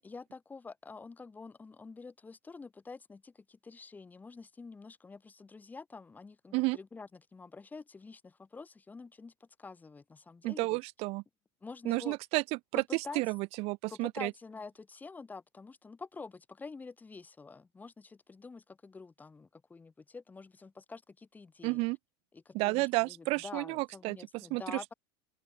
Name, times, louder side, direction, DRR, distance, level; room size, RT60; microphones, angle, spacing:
voice 1, 0.0-10.8 11.6-12.2 12.8-13.2 13.9-21.9 22.3-24.9, left 4 dB, 10° left, 7.3 m, -47 dB
voice 2, 10.4-11.2 11.9-12.4 12.7-12.8 13.2-14.3 21.6-22.0 22.5-24.2 24.5-24.9, right 24 dB, 50° right, 0.8 m, -31 dB
open air
supercardioid pair, 145°, 13 cm